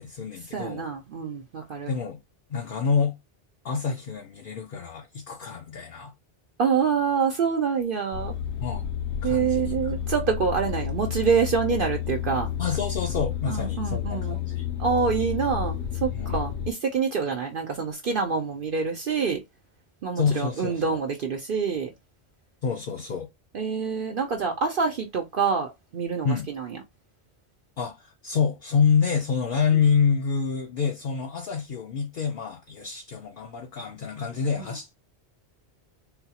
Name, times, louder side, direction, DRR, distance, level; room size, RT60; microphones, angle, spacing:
voice 1, 0.0-0.9 1.9-2.2 2.5-3.2 3.6-6.1 8.6-8.9 9.2-10.1 12.6-14.7 16.1-16.4 20.1-21.0 22.6-23.3 26.2-26.5 27.8-34.9, left 6 dB, 60° left, 0.7 m, -27 dB
voice 2, 0.5-1.9 6.6-8.4 9.2-12.5 13.5-14.4 14.8-19.4 20.0-21.9 23.5-26.8 34.6-34.7, right 6 dB, 60° right, 0.8 m, -26 dB
sound 1, 8.1-16.7, left 9 dB, 80° left, 1.0 m, -31 dB
3.8 x 2.3 x 2.8 m
omnidirectional pair, 1.1 m